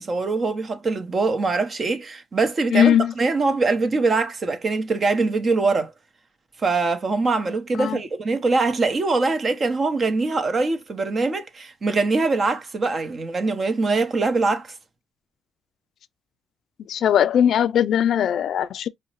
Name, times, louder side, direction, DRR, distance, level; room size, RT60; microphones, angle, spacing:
voice 1, 0.0-5.9 6.6-14.7, right 3 dB, 40° right, 0.9 m, -23 dB
voice 2, 2.7-3.1 7.8-8.0 16.9-18.9, left 9 dB, 70° left, 0.3 m, -19 dB
5.3 x 2.1 x 3.0 m
cardioid pair, 90°, 0 cm